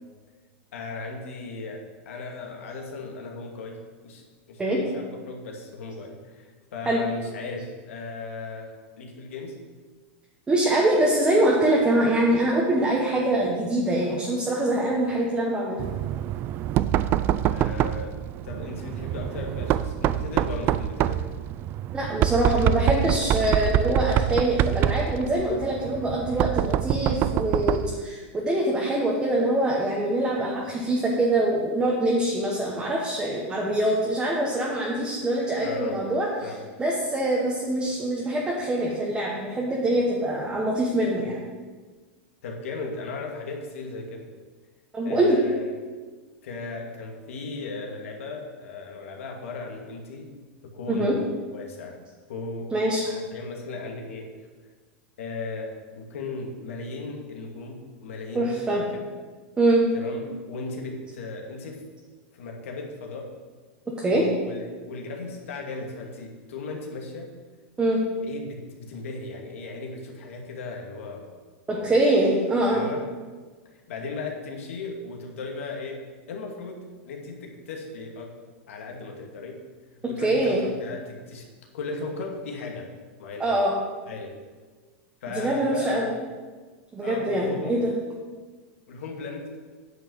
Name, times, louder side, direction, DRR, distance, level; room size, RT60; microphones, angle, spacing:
voice 1, 0.7-4.2 4.5-9.6 14.9-15.1 17.5-21.2 35.6-36.0 36.4-36.6 42.4-44.3 45.0-45.7 46.4-50.3 50.6-52.0 52.3-52.7 53.0-54.3 55.2-59.0 59.9-61.9 62.3-63.3 64.1-67.3 68.2-71.3 71.7-71.9 72.7-73.1 73.6-76.0 76.3-78.3 78.7-79.6 79.9-81.5 81.7-82.9 83.2-83.5 84.1-84.4 85.2-86.1 87.0-87.8 88.9-89.6, left 3 dB, 85° left, 1 dB, 2.3 m, -36 dB
voice 2, 10.5-15.8 21.9-36.3 36.8-41.4 44.9-45.4 50.9-51.1 52.7-53.0 58.3-58.8 59.6-59.8 64.0-64.2 67.8-68.0 71.7-72.8 80.2-80.6 83.4-83.7 85.3-86.1 86.9-87.9, right 1 dB, 10° right, -3 dB, 1.4 m, -24 dB
Knock, 15.8-28.0, right 11 dB, 30° right, 0.3 m, -25 dB
9.3 x 5.9 x 7.8 m, 1.4 s
supercardioid pair, 150°, 7 cm